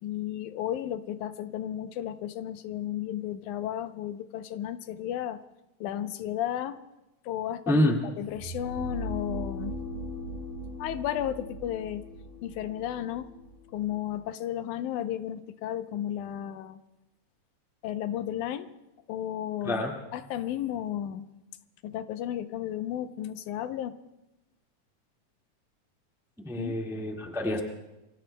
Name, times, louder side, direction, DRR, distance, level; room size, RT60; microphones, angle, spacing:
voice 1, 0.0-5.4 5.8-6.8 7.2-7.8 8.2-9.8 10.8-12.1 12.4-13.3 13.7-16.8 17.8-18.7 19.1-19.8 20.1-21.3 21.8-23.9 26.6-26.7, left 11 dB, 85° left, 10 dB, 2.2 m, -33 dB
voice 2, 7.7-8.0 19.6-19.9 26.4-27.6, left 1 dB, ahead, 0 dB, 0.7 m, -27 dB
sound 1, 8.2-14.1, equal, 80° right, 6.5 m, -39 dB
28.0 x 23.5 x 2.2 m, 0.96 s
omnidirectional pair, 3.4 m